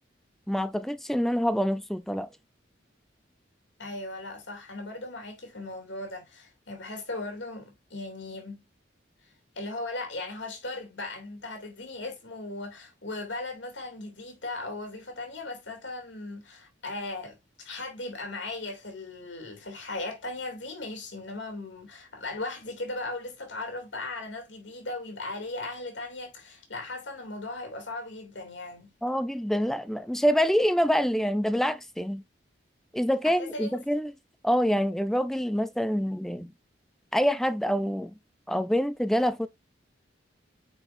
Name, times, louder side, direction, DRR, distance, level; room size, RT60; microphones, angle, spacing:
voice 1, 0.5-2.3 29.0-32.2 32.9-34.1 34.4-36.5 37.1-38.1 38.5-39.5, equal, ahead, 0.4 m, -26 dB
voice 2, 3.8-8.6 9.5-28.9 33.2-33.8, left 2 dB, 80° left, 2.7 m, -37 dB
9.0 x 4.5 x 2.6 m
head